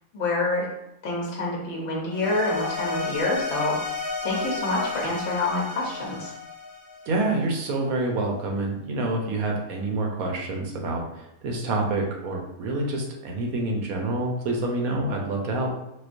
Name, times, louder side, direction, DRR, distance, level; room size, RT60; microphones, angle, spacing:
voice 1, 0.1-0.7 1.0-6.3, left 2 dB, 65° left, -3 dB, 0.9 m, -27 dB
sound 1, 2.1-7.4, left 3 dB, 30° left, 0.6 m, -32 dB
voice 2, 7.1-15.7, right 2 dB, 75° right, 0 dB, 1.1 m, -27 dB
4.3 x 2.2 x 2.5 m, 0.86 s
omnidirectional pair, 1.5 m